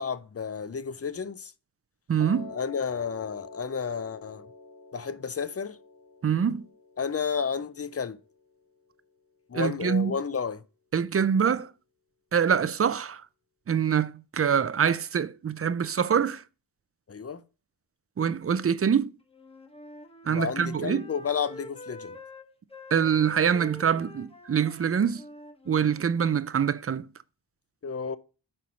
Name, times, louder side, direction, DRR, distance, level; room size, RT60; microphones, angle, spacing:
voice 1, 0.0-1.5 2.5-4.5 4.9-5.8 7.0-8.2 9.5-10.6 17.1-17.4 20.2-22.2 27.8-28.2, left 6 dB, 35° left, 0.5 m, -31 dB
voice 2, 2.1-2.5 6.2-6.6 9.5-10.1 10.9-11.7 12.3-13.2 13.7-16.4 18.2-19.1 20.3-21.0 22.9-25.2 25.7-27.1, right 7 dB, 35° right, 0.4 m, -25 dB
Piano, 2.2-8.3, left 3 dB, 50° left, 1.3 m, -47 dB
Wind instrument woodwind instrument, 19.3-26.1, left 2 dB, 15° left, 1.0 m, -46 dB
5.4 x 4.4 x 6.2 m
wide cardioid pair, 120°, 43 cm